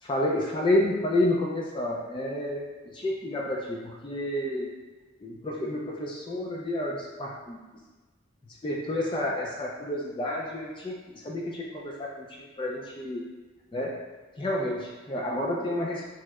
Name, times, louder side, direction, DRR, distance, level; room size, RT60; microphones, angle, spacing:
voice 1, 0.0-2.7 2.9-4.7 5.2-7.6 8.6-13.2 13.7-14.0 14.4-16.1, left 1 dB, 25° left, -2 dB, 0.3 m, -30 dB
2.9 x 2.0 x 3.4 m, 1.3 s
head